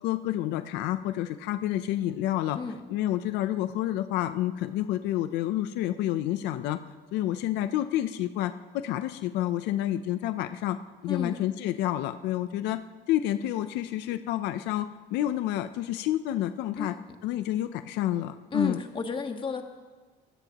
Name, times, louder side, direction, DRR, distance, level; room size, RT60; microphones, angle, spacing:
voice 1, 0.0-2.6 2.9-6.8 7.1-10.8 11.0-12.8 13.1-16.9 17.2-18.8, left 13 dB, 90° left, 10 dB, 0.6 m, -29 dB
voice 2, 11.1-11.4 16.7-17.2 18.5-19.6, left 4 dB, 30° left, 5 dB, 1.6 m, -32 dB
24.5 x 16.0 x 3.0 m, 1.4 s
cardioid pair, 110°, 17 cm